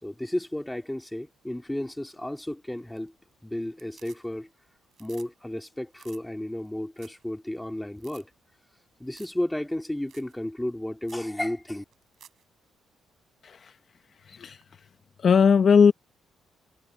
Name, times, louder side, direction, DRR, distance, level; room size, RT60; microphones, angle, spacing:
voice 1, 0.0-3.1 3.4-4.5 5.0-8.3 9.0-11.8, left 1 dB, 5° left, 2.9 m, -33 dB
sound 1, 2.8-3.3 3.6-4.6 4.8-5.3 5.6-5.7 5.9-6.2 6.7-6.8 7.0-7.2 7.6-7.7 8.0-8.2 9.1-9.4 9.7-9.8 10.1-10.3 10.7-10.8 11.0-11.3 11.9-12.4 14.6-14.7, right 9 dB, 65° right, 6.0 m, -54 dB
voice 2, 15.2-15.9, left 6 dB, 50° left, 0.7 m, -19 dB
cardioid pair, 90°, 0 cm